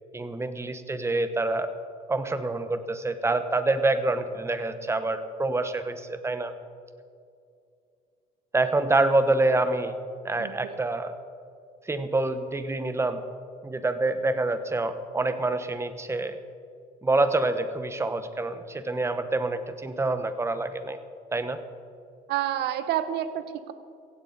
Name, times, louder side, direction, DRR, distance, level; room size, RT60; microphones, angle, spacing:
voice 1, 0.1-1.7 2.1-6.5 8.5-9.9 10.2-11.1 11.9-13.2 13.6-16.4 17.0-21.0 21.3-21.6, right 2 dB, 15° right, 10 dB, 1.1 m, -26 dB
voice 2, 10.4-10.8 22.3-23.7, right 11 dB, 80° right, 11 dB, 1.1 m, -29 dB
16.0 x 16.0 x 4.1 m, 2.4 s
cardioid pair, 110°, 17 cm